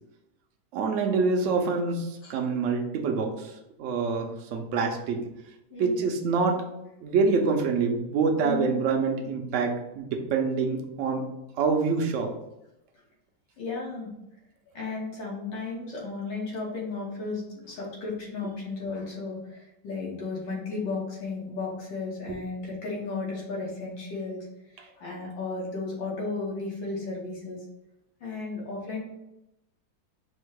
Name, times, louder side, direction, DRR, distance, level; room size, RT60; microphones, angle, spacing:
voice 1, 0.7-3.5 3.8-5.2 5.8-6.6 7.0-11.3 11.6-12.3, right 4 dB, 70° right, 2 dB, 0.7 m, -26 dB
voice 2, 13.6-14.1 14.7-24.5 24.7-27.6 28.2-29.0, left 3 dB, 75° left, -4 dB, 1.9 m, -34 dB
4.3 x 2.2 x 4.7 m, 0.88 s
omnidirectional pair, 2.0 m